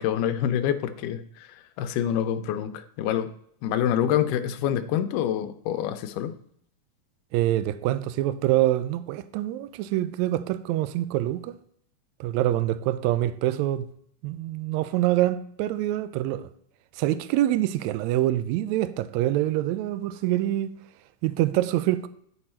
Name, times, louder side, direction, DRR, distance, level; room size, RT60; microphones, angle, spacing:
voice 1, 0.0-3.3 3.6-6.3, left 10 dB, 85° left, 2.1 m, -26 dB
voice 2, 7.3-11.6 12.2-13.9 14.2-16.4 17.0-20.7 21.2-22.1, right 14 dB, 85° right, 1.6 m, -25 dB
11.0 x 4.5 x 4.3 m
omnidirectional pair, 3.7 m